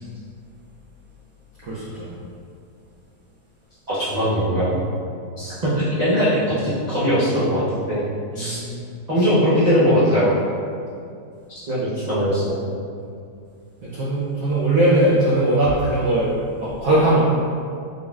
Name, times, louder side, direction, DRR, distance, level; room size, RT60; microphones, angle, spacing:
voice 1, 1.6-2.1 8.3-8.8 13.9-17.2, right 1 dB, 65° right, -9 dB, 0.9 m, -20 dB
voice 2, 3.9-4.7 5.4-8.0 8.3-8.6 9.1-10.3 11.7-12.5, equal, 80° right, -12 dB, 0.3 m, -20 dB
3.9 x 3.8 x 2.3 m, 2.4 s
omnidirectional pair, 1.9 m